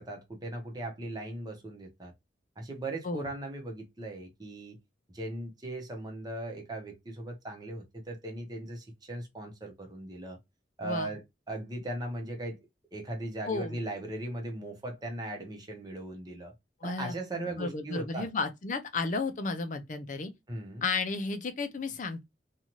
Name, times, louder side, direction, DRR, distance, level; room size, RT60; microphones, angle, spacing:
voice 1, 0.0-2.1 2.6-4.8 5.1-10.4 10.8-12.6 12.9-16.5 16.8-18.3 20.5-20.8, right 1 dB, 25° right, 0.8 m, -38 dB
voice 2, 13.5-13.8 16.8-20.3 20.8-22.2, left 4 dB, 45° left, 0.5 m, -33 dB
2.7 x 2.3 x 3.0 m
head